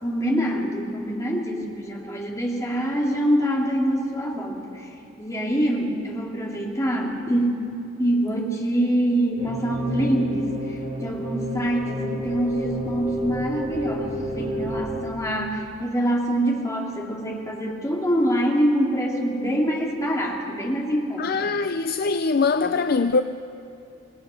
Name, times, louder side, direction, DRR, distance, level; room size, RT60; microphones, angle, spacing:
voice 1, 0.0-4.9 5.2-7.6 8.0-21.5, equal, 15° left, 2.7 m, -25 dB
sound 1, 9.4-15.0, equal, 35° right, 2.7 m, -30 dB
voice 2, 21.2-23.2, left 4 dB, 50° left, 0.5 m, -22 dB
26.5 x 18.5 x 6.3 m
head